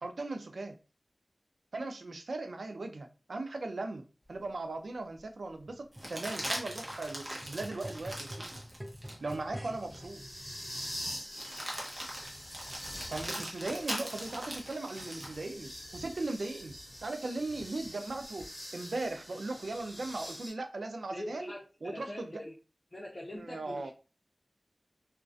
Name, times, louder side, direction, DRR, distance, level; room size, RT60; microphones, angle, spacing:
voice 1, 0.0-0.8 1.7-8.5 9.2-10.2 13.1-21.5 21.8-22.4 23.3-23.9, right 2 dB, 90° right, 0.3 m, -38 dB
sound 1, 4.4-4.5 5.9-9.4 9.9-10.0 11.3-15.4 17.6-18.5, right 1 dB, 35° right, 0.7 m, -41 dB
sound 2, 5.7-10.1 10.8-10.9, equal, 15° right, 0.4 m, -47 dB
sound 3, 7.4-20.5, equal, 10° left, 1.2 m, -46 dB
voice 2, 21.1-22.5 22.9-23.9, left 1 dB, 45° left, 0.6 m, -43 dB
2.3 x 2.1 x 2.4 m
wide cardioid pair, 65°, 0 cm